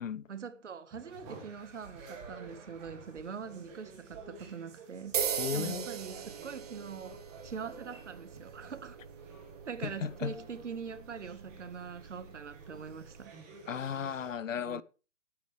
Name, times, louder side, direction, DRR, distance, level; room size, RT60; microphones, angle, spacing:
voice 1, 0.3-5.1 5.5-9.0 9.6-13.3 14.6-14.8, right 6 dB, 65° right, 1.6 m, -43 dB
sound 1, 0.9-14.3, right 3 dB, 15° right, 1.8 m, -52 dB
sound 2, 5.1-13.3, right 7 dB, 30° right, 1.3 m, -40 dB
voice 2, 5.4-5.9 10.0-10.3 13.7-14.8, left 7 dB, 80° left, 1.0 m, -35 dB
17.5 x 9.5 x 3.3 m
hypercardioid pair, 175°, 38 cm